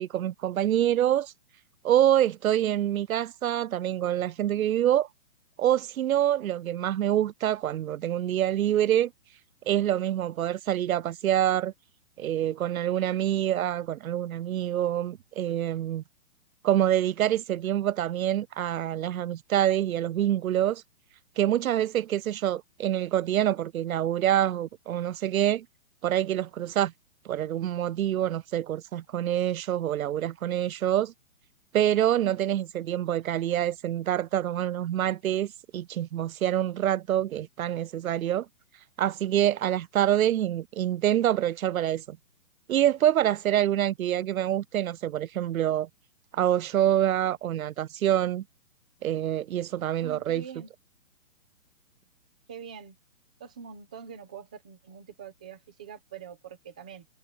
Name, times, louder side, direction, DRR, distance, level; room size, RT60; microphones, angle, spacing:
voice 1, 0.0-1.3 1.8-5.1 5.6-9.1 9.7-11.7 12.2-16.0 16.6-20.8 21.4-25.7 26.0-26.9 27.3-31.1 31.7-38.5 39.0-42.2 42.7-45.9 46.3-48.4 49.0-50.4, right 11 dB, 85° right, 0.6 m, -26 dB
voice 2, 50.0-50.7 52.5-53.0 53.4-57.1, right 7 dB, 5° right, 0.7 m, -44 dB
hypercardioid pair, 175°, 41 cm